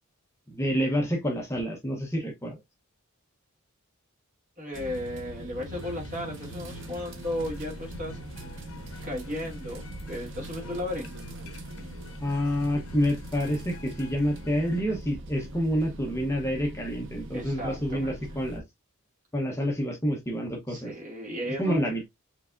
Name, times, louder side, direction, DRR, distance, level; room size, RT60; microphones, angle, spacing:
voice 1, 0.5-2.6 12.2-18.6 19.3-20.9 21.5-22.1, equal, 15° left, 0.8 m, -28 dB
voice 2, 4.6-8.2 9.0-11.1 17.3-18.1 20.7-21.8, left 1 dB, 35° right, 2.0 m, -35 dB
sound 1, 4.7-18.6, right 1 dB, 55° right, 0.8 m, -42 dB
sound 2, 5.7-14.8, equal, 70° left, 0.7 m, -47 dB
4.7 x 3.3 x 2.4 m
head